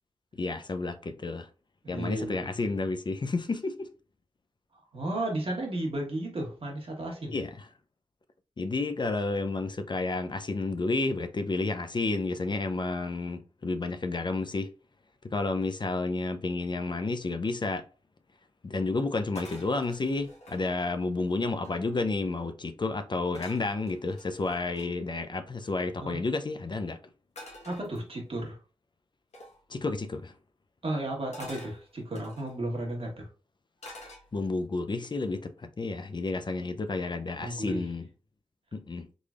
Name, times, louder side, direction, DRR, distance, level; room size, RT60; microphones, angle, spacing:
voice 1, 0.3-1.5 1.9-3.9 7.3-7.7 8.6-14.7 15.2-17.8 18.6-27.0 29.7-30.3 34.3-38.1 38.7-39.1, left 3 dB, 45° left, 0.5 m, -31 dB
voice 2, 1.8-2.5 4.9-7.3 26.0-26.2 27.7-28.6 30.8-33.3 37.4-37.9, right 1 dB, 55° right, 1.6 m, -33 dB
sound 1, 19.3-20.6 21.2-21.3 21.5-22.1 23.3-24.9 27.4-28.4 29.3-29.6 31.3-32.5 33.8-34.6 35.1-35.4, left 1 dB, 80° left, 1.2 m, -49 dB
3.8 x 3.2 x 2.4 m
cardioid pair, 40°, 11 cm